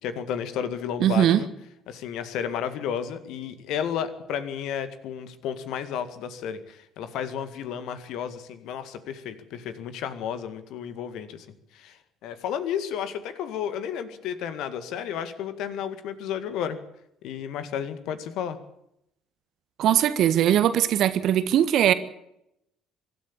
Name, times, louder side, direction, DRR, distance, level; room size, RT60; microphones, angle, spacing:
voice 1, 0.0-1.5 1.9-11.5 11.7-16.8 17.2-18.6, left 8 dB, 60° left, 2.0 m, -32 dB
voice 2, 1.0-1.4 19.8-21.9, right 11 dB, 55° right, 1.6 m, -20 dB
23.5 x 12.5 x 8.7 m
figure-of-eight pair, 55°, 0 cm